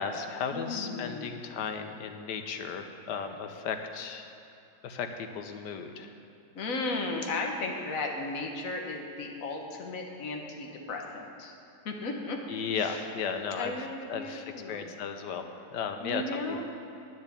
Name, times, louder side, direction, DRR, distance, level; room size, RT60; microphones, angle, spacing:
voice 1, 0.0-4.3 4.8-6.1 12.5-13.7 14.1-16.2 16.5-16.6, left 6 dB, 80° left, 6 dB, 1.5 m, -35 dB
voice 2, 0.5-1.4 6.5-11.5 11.8-12.4 12.7-13.1 13.5-14.9 16.0-16.6, left 3 dB, 55° left, 1 dB, 1.6 m, -35 dB
10.0 x 7.0 x 8.4 m, 2.9 s
omnidirectional pair, 1.8 m